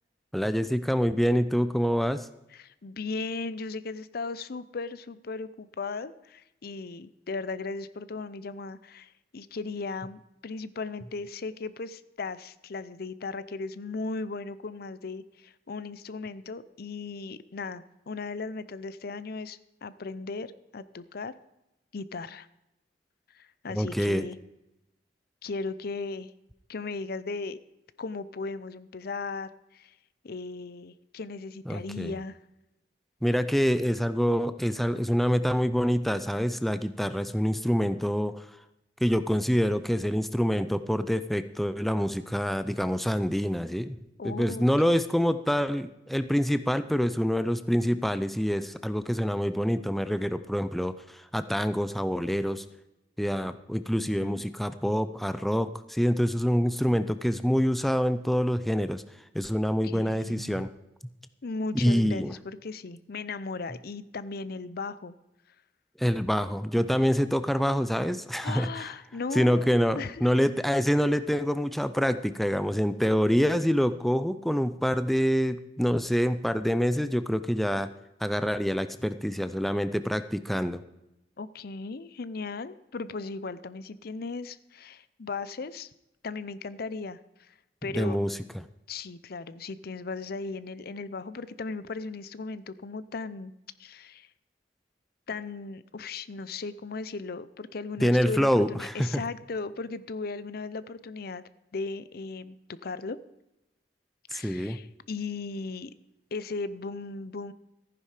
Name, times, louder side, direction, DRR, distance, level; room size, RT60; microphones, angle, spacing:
voice 1, 0.3-2.3 23.7-24.3 31.7-32.1 33.2-38.5 39.0-44.0 44.2-52.6 53.2-59.0 59.3-60.7 61.7-62.3 66.0-68.9 69.3-77.9 78.2-80.8 87.9-88.4 98.0-99.2 104.3-104.8, equal, ahead, 11 dB, 0.4 m, -26 dB
voice 2, 2.5-21.3 21.9-22.5 23.3-24.4 25.4-26.3 26.7-27.6 28.0-29.9 30.2-32.4 44.2-45.0 54.0-54.4 59.8-60.7 61.4-65.1 68.4-70.3 81.4-85.9 86.2-87.5 87.8-88.2 88.9-93.5 93.8-94.3 95.3-101.4 101.7-102.6 102.8-103.2 104.3-105.9 106.3-107.5, left 4 dB, 60° left, 16 dB, 0.6 m, -37 dB
14.5 x 10.0 x 5.0 m, 0.89 s
head